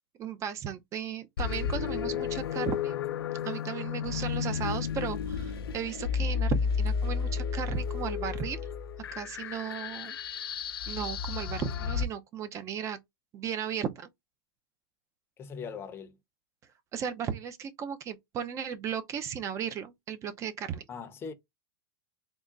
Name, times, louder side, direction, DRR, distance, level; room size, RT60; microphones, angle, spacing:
voice 1, 0.2-3.0 3.4-8.6 9.1-10.2 10.9-13.0 13.3-14.1 16.9-20.9, right 8 dB, 25° right, 0.5 m, -35 dB
sound 1, 1.4-12.0, left 6 dB, 85° left, 0.5 m, -32 dB
voice 2, 15.4-16.2 20.9-21.3, left 6 dB, 20° left, 0.7 m, -40 dB
3.6 x 2.1 x 3.7 m
hypercardioid pair, 135°, 12 cm